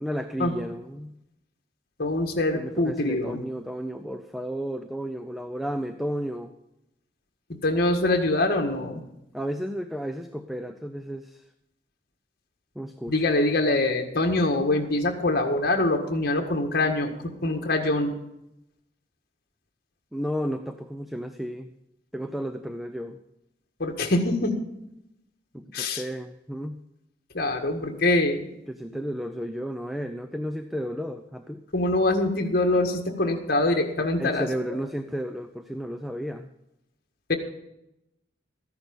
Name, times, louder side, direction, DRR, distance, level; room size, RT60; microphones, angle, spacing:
voice 1, 0.0-1.2 2.5-6.5 9.3-11.4 12.8-13.2 20.1-21.7 22.1-23.2 25.5-26.8 28.7-31.6 34.0-36.5, equal, ahead, 8 dB, 0.5 m, -33 dB
voice 2, 2.0-3.4 7.5-9.0 13.1-18.1 23.8-24.6 25.7-26.0 27.3-28.4 31.7-34.5 37.3-37.4, left 2 dB, 55° left, 4 dB, 1.7 m, -24 dB
14.0 x 10.5 x 5.3 m, 0.86 s
head